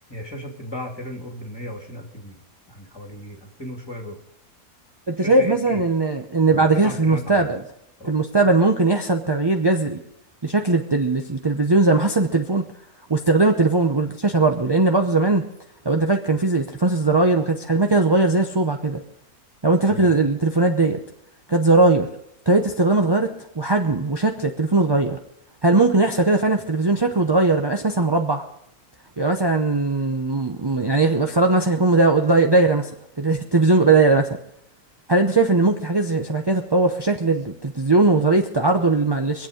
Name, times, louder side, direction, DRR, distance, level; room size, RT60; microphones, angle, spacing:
voice 1, 0.1-2.4 2.7-4.2 5.2-5.8 6.5-7.5 8.0-8.1 19.9-20.1, equal, 15° left, 1 dB, 2.5 m, -35 dB
voice 2, 5.1-7.6 8.1-10.0 10.4-12.7 13.1-15.4 15.8-19.0 19.6-21.0 21.5-22.1 22.5-25.2 25.6-28.4 29.2-34.4 35.1-39.5, right 3 dB, 30° right, 3 dB, 0.5 m, -19 dB
24.5 x 8.3 x 5.1 m, 0.78 s
omnidirectional pair, 1.7 m